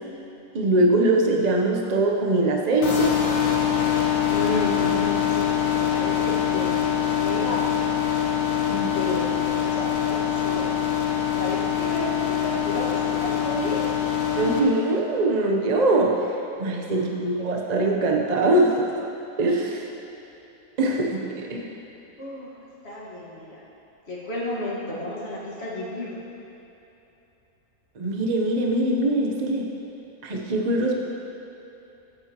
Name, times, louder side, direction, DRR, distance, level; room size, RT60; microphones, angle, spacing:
voice 1, 0.5-3.1 8.7-8.9 14.3-16.1 16.6-18.9 19.4-19.9 20.8-21.7 28.0-29.7 30.2-31.0, right 2 dB, 40° right, -1 dB, 0.7 m, -22 dB
sound 1, 2.8-14.6, left 9 dB, 85° left, 1.5 m, -24 dB
voice 2, 4.3-5.5 5.8-6.8 7.2-7.6 8.9-10.7 11.3-13.9 16.9-17.2 22.2-22.5 22.8-23.6 24.1-26.2, left 2 dB, 45° left, -6 dB, 1.8 m, -32 dB
14.5 x 7.9 x 2.9 m, 3.0 s
omnidirectional pair, 1.6 m